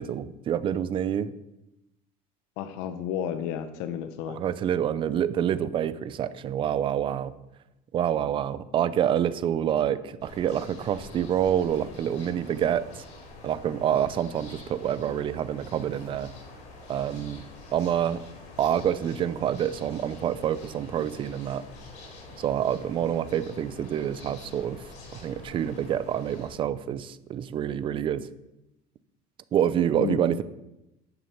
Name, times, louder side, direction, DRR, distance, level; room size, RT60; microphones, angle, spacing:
voice 1, 0.0-1.3 4.3-7.3 7.9-13.0 13.4-16.3 16.9-17.4 17.7-18.2 18.6-21.6 22.4-24.8 25.1-28.3 29.5-30.4, right 10 dB, 30° right, 16 dB, 0.5 m, -27 dB
voice 2, 2.6-4.4 30.0-30.4, left 9 dB, 80° left, 9 dB, 0.9 m, -32 dB
sound 1, 10.2-26.5, left 3 dB, 45° left, 4.5 m, -46 dB
11.0 x 6.3 x 8.2 m, 0.92 s
cardioid pair, 165°, 17 cm